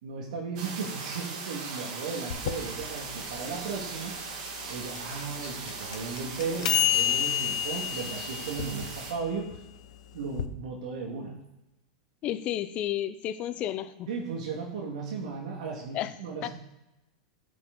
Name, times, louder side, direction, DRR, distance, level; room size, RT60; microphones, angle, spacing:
voice 1, 0.0-9.6 10.1-11.4 14.1-16.5, right 5 dB, 80° right, -1 dB, 2.0 m, -36 dB
sound 1, 0.6-9.1, right 4 dB, 65° right, 2.5 m, -39 dB
sound 2, 2.3-10.5, left 11 dB, 80° left, 0.8 m, -31 dB
voice 2, 12.2-14.1 15.9-16.1 16.4-16.5, left 12 dB, 35° left, 12 dB, 0.7 m, -31 dB
10.5 x 6.1 x 3.9 m, 0.94 s
supercardioid pair, 135°, 4 cm